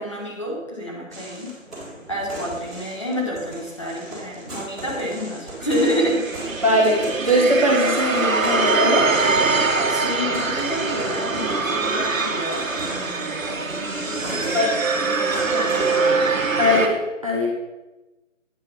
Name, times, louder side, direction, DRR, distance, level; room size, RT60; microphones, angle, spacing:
voice 1, 0.0-1.6 2.1-6.2 9.9-13.6 14.0-14.6 15.0-16.3, equal, 25° left, -3 dB, 1.3 m, -29 dB
sound 1, 1.1-16.1, right 1 dB, ahead, 0.8 m, -37 dB
sound 2, 5.6-16.9, right 4 dB, 85° right, 1.3 m, -23 dB
voice 2, 6.6-9.1 14.5-14.7 16.6-16.9 17.2-17.5, left 1 dB, 25° right, -3 dB, 1.2 m, -20 dB
9.3 x 4.3 x 6.6 m, 1.1 s
figure-of-eight pair, 175°, 39 cm